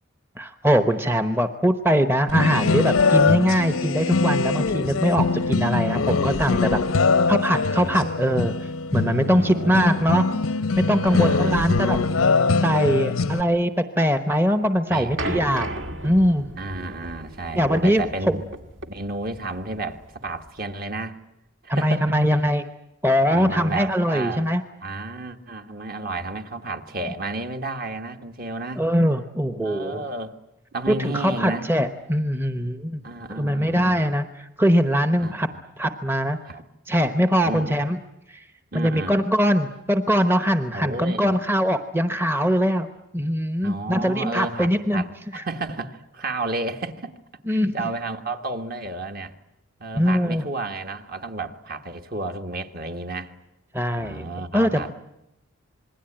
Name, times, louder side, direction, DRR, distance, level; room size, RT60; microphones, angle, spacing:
voice 1, 0.4-6.8 7.3-8.5 8.9-10.2 10.8-12.0 12.6-13.7 14.0-15.8 16.0-16.5 17.6-18.3 21.7-22.6 23.0-24.6 28.8-30.0 30.9-33.0 33.3-35.5 35.8-36.4 36.9-38.0 38.3-38.4 38.7-42.9 43.1-45.0 45.3-45.4 47.5-47.9 49.9-50.4 53.7-54.3 54.5-54.9, equal, 10° right, 8 dB, 0.9 m, -22 dB
sound 1, 2.3-13.4, left 4 dB, 85° left, 0.9 m, -22 dB
voice 2, 5.6-6.2 7.7-8.2 9.3-10.1 11.1-11.8 14.9-15.4 16.6-18.5 18.9-21.2 21.6-22.1 23.3-24.5 24.8-28.8 29.6-30.3 30.7-31.7 33.0-34.0 35.2-35.6 36.4-36.6 37.4-37.8 38.7-39.2 40.7-41.4 43.6-47.1 47.5-49.3 49.8-53.3 54.0-54.9, right 2 dB, 45° right, 6 dB, 1.6 m, -32 dB
sound 2, 15.2-20.6, right 1 dB, 60° right, 2.0 m, -35 dB
27.0 x 21.0 x 8.9 m, 0.89 s
head